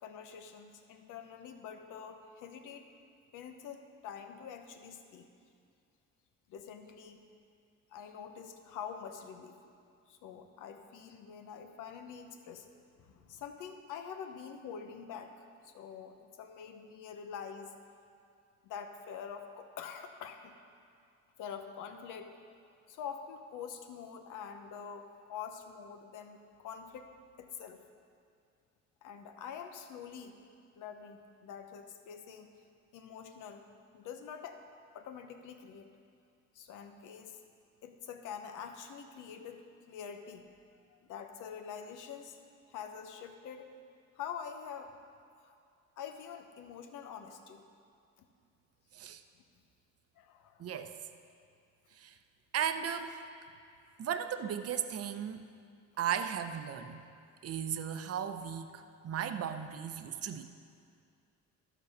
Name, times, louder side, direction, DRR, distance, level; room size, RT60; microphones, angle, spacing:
voice 1, 0.0-2.9 3.3-5.3 6.5-7.3 7.9-9.6 10.1-12.7 13.0-17.7 18.6-20.5 21.4-22.4 22.9-27.8 29.0-30.4 30.7-32.5 32.9-33.6 33.9-34.6 34.9-35.9 36.5-37.4 37.8-40.5 40.9-42.4 42.7-43.7 44.1-45.0 45.4-45.6 46.0-47.6 48.2-48.3 50.2-50.8, left 7 dB, 85° left, 6 dB, 0.9 m, -46 dB
voice 2, 50.6-51.0 51.9-52.2 52.5-53.2 54.0-55.5 56.0-57.0 57.4-60.5, right 8 dB, 50° right, 9 dB, 0.7 m, -36 dB
13.0 x 5.4 x 6.5 m, 2.3 s
cardioid pair, 90°, 30 cm